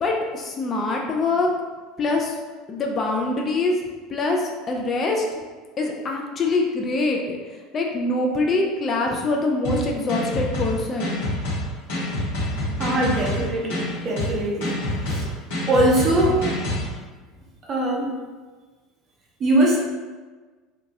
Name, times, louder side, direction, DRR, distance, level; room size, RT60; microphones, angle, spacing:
voice 1, 0.0-1.5 2.0-2.4 2.7-3.7 4.1-5.3 5.8-11.2, left 2 dB, 30° left, 0 dB, 0.4 m, -24 dB
sound 1, 9.6-16.9, left 1 dB, 60° left, 0.9 m, -27 dB
voice 2, 12.8-14.8 15.1-15.2 15.7-16.4 17.7-18.1 19.4-19.8, right 1 dB, 35° right, -2 dB, 0.6 m, -21 dB
2.8 x 2.2 x 2.7 m, 1.3 s
figure-of-eight pair, 70°, 0 cm